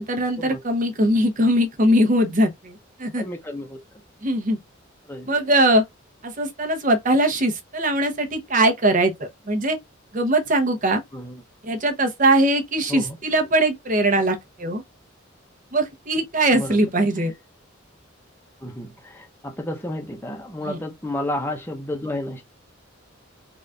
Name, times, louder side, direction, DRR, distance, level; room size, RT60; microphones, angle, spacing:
voice 1, 0.0-3.2 4.2-4.6 5.3-5.8 6.2-9.8 10.1-11.0 11.6-14.8 15.7-17.3 20.6-20.8, right 1 dB, 40° right, 0.9 m, -21 dB
voice 2, 3.2-3.8 5.1-5.3 11.1-11.4 12.9-13.2 16.5-16.8 18.6-22.4, left 1 dB, 10° left, 0.7 m, -31 dB
4.0 x 2.5 x 3.3 m
head